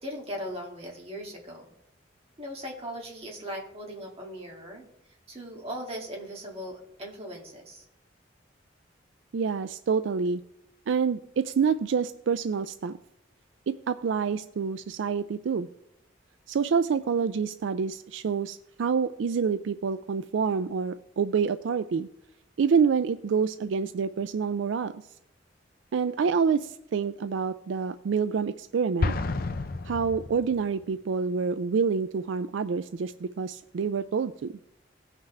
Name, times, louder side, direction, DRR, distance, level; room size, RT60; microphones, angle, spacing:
voice 1, 0.0-1.7 2.4-4.9 5.3-7.8, equal, 30° right, -1 dB, 2.2 m, -39 dB
voice 2, 9.3-10.4 10.9-13.0 13.7-15.7 16.5-22.1 22.6-24.9 25.9-29.1 29.9-34.5, right 6 dB, 75° right, 12 dB, 0.4 m, -27 dB
Explosion, 29.0-30.8, left 3 dB, 50° left, 0.6 m, -30 dB
17.5 x 5.8 x 3.3 m, 0.80 s
head